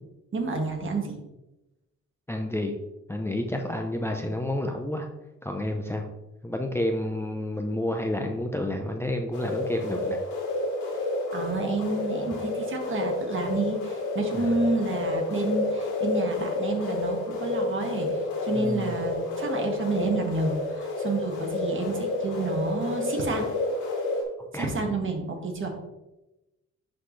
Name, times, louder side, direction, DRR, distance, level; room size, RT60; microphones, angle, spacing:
voice 1, 0.3-1.2 11.3-18.1 18.4-23.5 24.5-25.7, right 3 dB, 40° right, 2 dB, 1.8 m, -29 dB
voice 2, 2.3-2.8 3.1-5.1 5.4-6.0 6.4-10.2 14.3-14.5 18.5-18.9 24.5-24.7, left 1 dB, 10° left, 3 dB, 0.7 m, -30 dB
sound 1, 9.3-24.2, left 2 dB, 80° left, 2.7 m, -30 dB
11.0 x 4.1 x 3.2 m, 0.97 s
cardioid pair, 90°, 30 cm